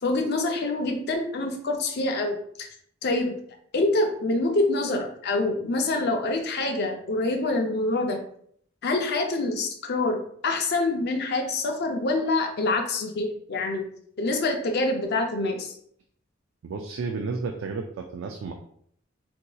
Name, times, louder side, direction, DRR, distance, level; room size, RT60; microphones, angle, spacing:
voice 1, 0.0-2.7 3.0-3.4 3.7-8.2 8.8-13.9 14.2-15.8, left 2 dB, 55° left, 3 dB, 0.5 m, -26 dB
voice 2, 16.6-18.5, right 4 dB, 75° right, 3 dB, 0.3 m, -32 dB
3.9 x 2.7 x 2.3 m, 0.64 s
head